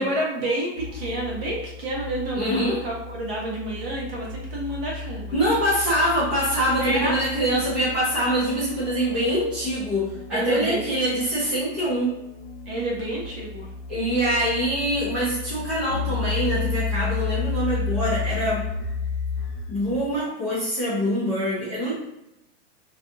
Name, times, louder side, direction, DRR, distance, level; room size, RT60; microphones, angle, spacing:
voice 1, 0.0-5.3 6.8-7.1 10.3-10.9 12.7-13.7, right 1 dB, 55° right, -3 dB, 1.1 m, -29 dB
sound 1, 0.8-20.2, left 4 dB, 55° left, 0.7 m, -33 dB
voice 2, 2.3-2.8 5.3-12.1 13.9-18.6 19.7-21.9, equal, ahead, -13 dB, 0.4 m, -24 dB
2.6 x 2.3 x 2.6 m, 0.87 s
supercardioid pair, 170°, 35 cm